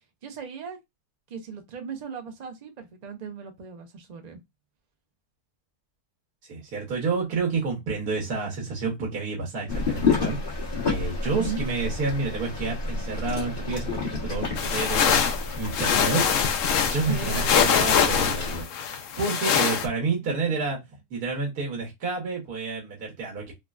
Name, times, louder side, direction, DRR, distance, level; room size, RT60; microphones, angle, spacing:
voice 1, 0.2-0.8 1.3-4.4 11.3-11.7 17.1-17.8, right 5 dB, 60° right, 0.4 m, -36 dB
voice 2, 6.5-16.3 16.8-20.8 21.1-23.5, right 4 dB, 80° right, 1.6 m, -30 dB
sound 1, 9.7-18.6, left 4 dB, 40° left, 1.2 m, -30 dB
sound 2, 14.6-19.9, left 7 dB, 65° left, 0.8 m, -23 dB
3.7 x 2.1 x 2.3 m
omnidirectional pair, 1.6 m